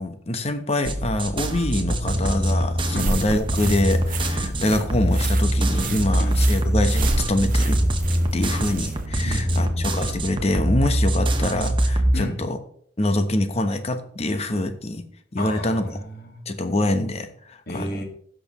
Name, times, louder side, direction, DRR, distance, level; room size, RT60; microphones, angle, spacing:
voice 1, 0.0-7.8 8.3-12.6 13.0-15.0 15.3-15.9 16.5-17.9, left 1 dB, 35° left, 8 dB, 1.0 m, -25 dB
sound 1, 0.8-12.1, right 1 dB, 30° right, 1.0 m, -23 dB
sound 2, 3.0-9.1, right 3 dB, 50° right, 0.7 m, -32 dB
voice 2, 9.3-9.8 12.1-12.4 15.4-16.5 17.7-18.0, equal, 60° left, 2 dB, 1.9 m, -32 dB
16.0 x 6.3 x 3.0 m, 0.63 s
head